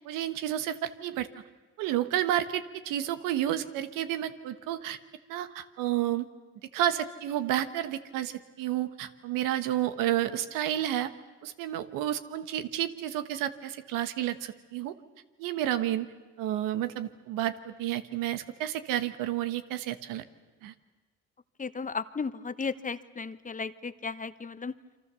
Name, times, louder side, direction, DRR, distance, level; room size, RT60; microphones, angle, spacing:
voice 1, 0.0-1.3 1.8-5.0 5.3-6.3 6.7-11.1 11.4-14.9 15.4-16.1 16.4-20.2 20.6-20.7, right 12 dB, 85° right, 11 dB, 1.4 m, -31 dB
voice 2, 21.6-24.7, left 5 dB, 25° left, 13 dB, 1.0 m, -35 dB
28.5 x 24.5 x 6.9 m, 1.3 s
supercardioid pair, 80°, 31 cm